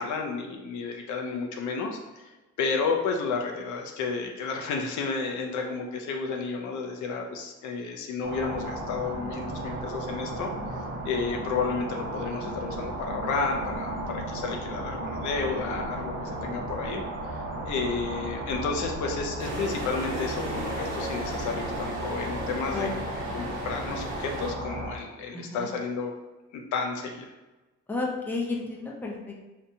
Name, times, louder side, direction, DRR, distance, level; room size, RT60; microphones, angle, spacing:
voice 1, 0.0-17.0 17.3-22.9 23.3-26.1 26.5-27.3, left 4 dB, 75° left, 2 dB, 0.5 m, -32 dB
sound 1, 8.2-25.0, right 1 dB, 40° right, 0.6 m, -35 dB
sound 2, 19.4-24.5, right 1 dB, 80° right, 1.0 m, -36 dB
voice 2, 23.2-23.6 25.3-25.7 27.9-29.5, left 3 dB, 5° left, -2 dB, 0.5 m, -33 dB
2.8 x 2.1 x 2.6 m, 1.1 s
cardioid pair, 90°, 30 cm